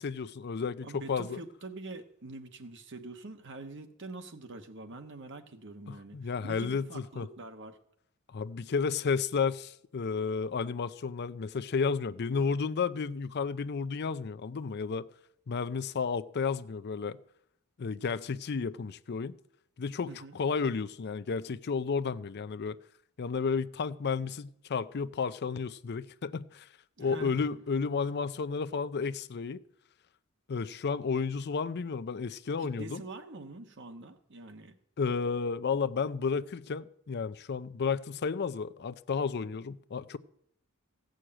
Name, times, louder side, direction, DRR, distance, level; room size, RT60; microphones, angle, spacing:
voice 1, 0.0-1.4 5.9-7.3 8.3-15.1 15.5-17.2 17.8-19.4 19.8-22.8 23.2-26.7 27.0-29.6 30.5-33.0 35.0-40.2, left 5 dB, 50° left, 0.5 m, -32 dB
voice 2, 0.8-7.8 20.1-20.4 27.0-27.4 32.6-34.8, right 2 dB, 55° right, 1.3 m, -45 dB
15.5 x 6.4 x 8.8 m
head